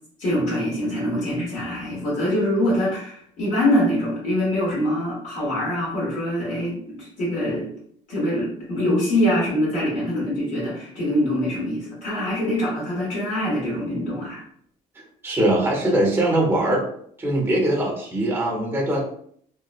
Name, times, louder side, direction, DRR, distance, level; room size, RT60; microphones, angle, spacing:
voice 1, 0.2-7.7 8.1-14.4, left 1 dB, 55° left, -6 dB, 1.3 m, -24 dB
voice 2, 15.2-16.8 17.2-19.0, right 1 dB, 15° right, -2 dB, 0.8 m, -21 dB
2.9 x 2.1 x 2.4 m, 0.64 s
cardioid pair, 120°, 15 cm